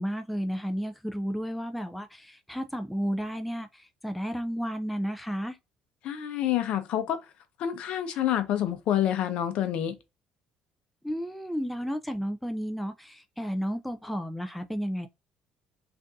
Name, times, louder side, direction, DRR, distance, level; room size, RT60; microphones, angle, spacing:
voice 1, 0.0-5.6 11.0-15.1, equal, ahead, 0.3 m, -32 dB
voice 2, 6.0-7.2 7.6-9.9, left 11 dB, 60° left, 0.7 m, -27 dB
3.5 x 2.6 x 2.6 m
cardioid pair, 130°, 2 cm